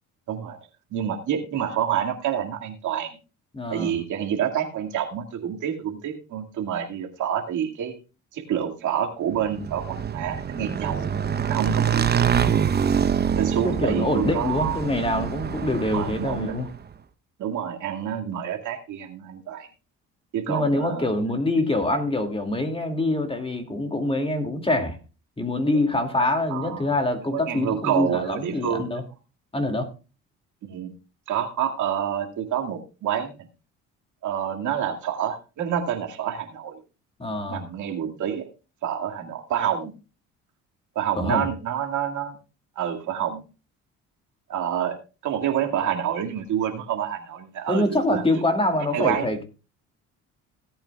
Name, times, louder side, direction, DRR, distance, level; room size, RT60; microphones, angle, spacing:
voice 1, 0.3-0.6 0.9-3.2 3.7-8.0 8.3-11.1 11.5-12.5 13.4-14.8 15.2-15.3 15.9-16.6 17.4-19.7 20.3-21.1 25.7-25.9 26.5-26.9 27.3-29.0 30.6-30.9 31.3-33.3 34.2-36.8 37.5-38.5 38.8-39.9 41.0-42.4 42.8-43.4 44.5-45.0 45.2-48.2 48.9-49.3, right 9 dB, 65° right, 3 dB, 2.2 m, -28 dB
voice 2, 3.5-3.9 13.6-16.7 20.5-25.0 25.4-29.0 29.5-29.9 37.2-37.6 41.2-41.5 47.7-49.4, left 2 dB, 15° left, 5 dB, 2.4 m, -25 dB
Motorcycle / Engine, 9.4-16.7, right 8 dB, 30° right, 0.8 m, -25 dB
17.5 x 8.6 x 2.3 m, 0.32 s
supercardioid pair, 80°, 32 cm